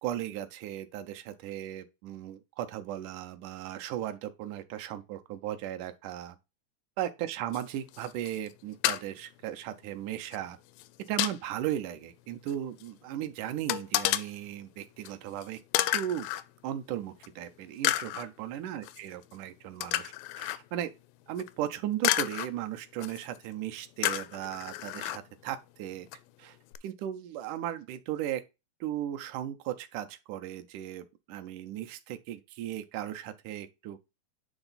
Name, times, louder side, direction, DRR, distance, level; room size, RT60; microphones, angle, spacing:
voice 1, 0.0-6.4 7.0-10.6 11.1-15.6 15.9-16.3 16.6-20.9 21.3-26.1 26.4-26.6 26.8-28.4 28.8-34.1, right 11 dB, 75° right, 2.0 m, -36 dB
sound 1, 7.5-7.6 7.9-8.5 8.8-9.0 10.3-10.4 10.8-11.4 12.5-12.6 12.8-12.9 13.7-14.3 15.1-15.2 15.4-15.5 15.7-16.4 17.2-17.3 17.8-18.3 18.8-19.0 19.8-20.6 21.4-21.5 22.0-22.5 23.0-23.4 24.0-25.2 26.1-26.2 26.7-26.8, left 15 dB, 85° left, 2.2 m, -30 dB
8.9 x 3.5 x 3.9 m
omnidirectional pair, 4.1 m